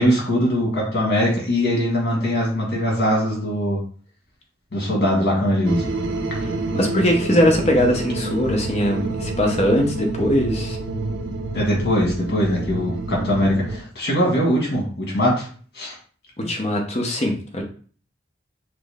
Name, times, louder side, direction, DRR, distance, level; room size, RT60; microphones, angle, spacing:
voice 1, 0.0-3.8 4.7-5.9 11.5-15.5 15.7-15.9 16.4-16.5, equal, 60° left, -2 dB, 1.7 m, -21 dB
sound 1, 5.6-13.8, right 2 dB, 70° right, 0.5 m, -28 dB
voice 2, 6.4-10.8 16.4-17.6, equal, 35° left, 2 dB, 0.8 m, -21 dB
5.9 x 2.1 x 3.5 m, 0.43 s
head